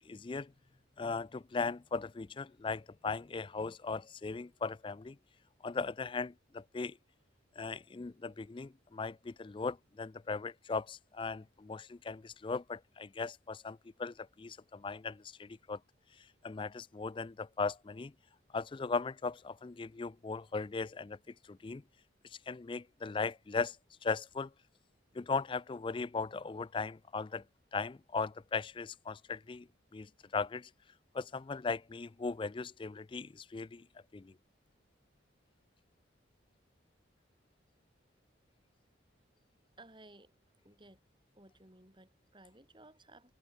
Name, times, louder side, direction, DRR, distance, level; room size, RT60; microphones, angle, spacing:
voice 1, 0.1-0.5 1.0-5.2 5.6-7.0 7.6-15.8 16.4-18.1 18.5-21.2 21.5-21.8 22.5-23.8 24.0-24.5 25.1-27.4 27.7-29.7 29.9-30.7 31.1-33.8 34.1-34.3, left 4 dB, 25° left, 0.3 m, -38 dB
voice 2, 39.8-40.3 40.6-41.0 41.3-43.3, right 2 dB, 25° right, 5.9 m, -58 dB
head